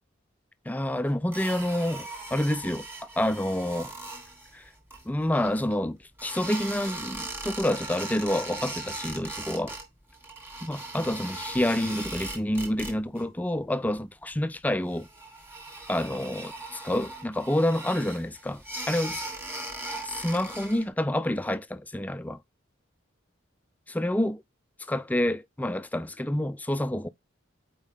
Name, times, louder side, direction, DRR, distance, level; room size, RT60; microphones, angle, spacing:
voice 1, 0.7-2.9 3.2-3.9 4.5-4.6 5.1-9.8 10.6-15.1 15.9-19.2 20.0-22.4 23.9-24.4 24.9-27.1, left 1 dB, 10° left, 0.3 m, -28 dB
sound 1, 1.3-5.7 6.2-9.8 10.1-13.2 13.5-14.0 14.3-14.4 14.8-20.9, right 2 dB, 10° right, 1.8 m, -39 dB
5.4 x 4.6 x 4.9 m
head